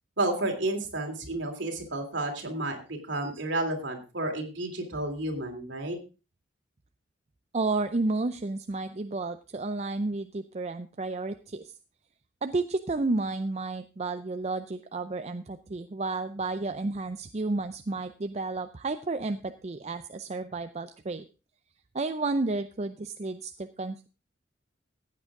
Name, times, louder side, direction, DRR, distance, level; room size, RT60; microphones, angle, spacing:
voice 1, 0.2-6.0, right 2 dB, 65° right, 3 dB, 3.1 m, -31 dB
voice 2, 7.5-11.7 12.4-21.3 21.9-24.1, right 3 dB, 35° right, 9 dB, 0.5 m, -31 dB
15.0 x 8.9 x 3.7 m, 0.32 s
head